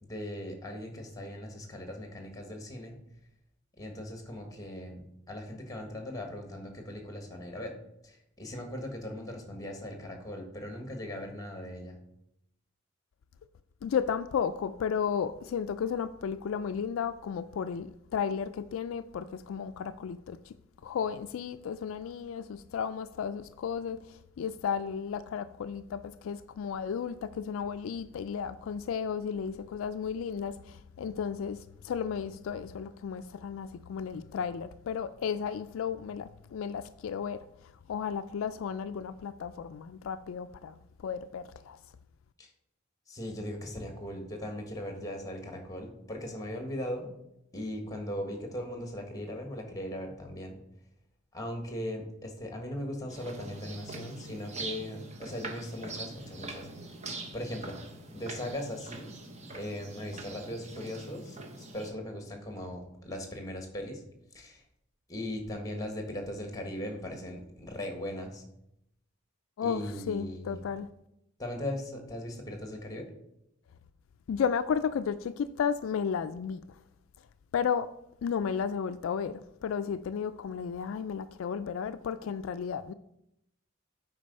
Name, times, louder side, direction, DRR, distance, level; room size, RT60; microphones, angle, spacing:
voice 1, 0.0-3.0 3.8-7.7 8.0-12.0 42.4-42.5 43.1-47.1 47.5-50.6 51.3-56.7 57.3-57.8 58.1-59.1 59.5-64.0 64.3-64.6 65.1-68.4 69.6-70.8 71.4-73.1, left 1 dB, 15° left, 1.4 m, -39 dB
voice 2, 13.8-20.5 20.8-37.4 37.9-41.8 69.6-70.9 74.3-76.6 77.5-77.9 78.2-82.9, left 7 dB, 70° left, 0.3 m, -33 dB
sound 1, 53.1-61.9, right 2 dB, 35° right, 1.0 m, -43 dB
8.6 x 4.5 x 5.3 m
head